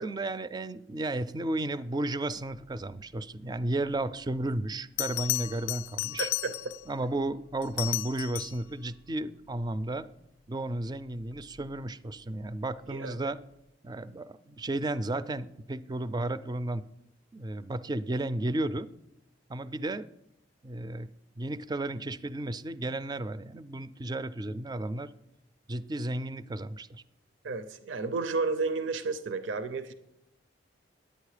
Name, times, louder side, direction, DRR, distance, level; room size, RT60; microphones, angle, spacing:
voice 1, 0.0-6.3 6.9-10.1 10.5-13.4 13.8-16.8 17.3-18.9 19.5-20.1 20.6-21.1 21.4-25.1 25.7-27.0, right 2 dB, 20° right, 15 dB, 0.3 m, -33 dB
Bell, 4.4-4.5 5.0-6.9 7.6-8.7 11.4-11.6, left 17 dB, 80° left, 0.3 m, -33 dB
voice 2, 6.2-6.8 12.9-13.3 27.4-29.9, right 4 dB, 80° right, 11 dB, 0.6 m, -32 dB
10.0 x 8.7 x 4.9 m, 0.82 s
head